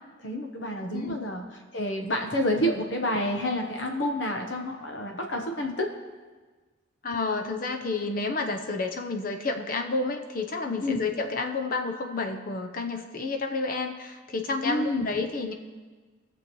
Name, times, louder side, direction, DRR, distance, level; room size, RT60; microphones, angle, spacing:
voice 1, 0.2-1.4 1.7-5.9 10.8-11.0 14.6-15.0, left 1 dB, 65° left, 2 dB, 1.0 m, -29 dB
voice 2, 7.0-15.5, left 3 dB, 45° left, 5 dB, 0.7 m, -30 dB
21.0 x 7.1 x 3.1 m, 1.4 s
head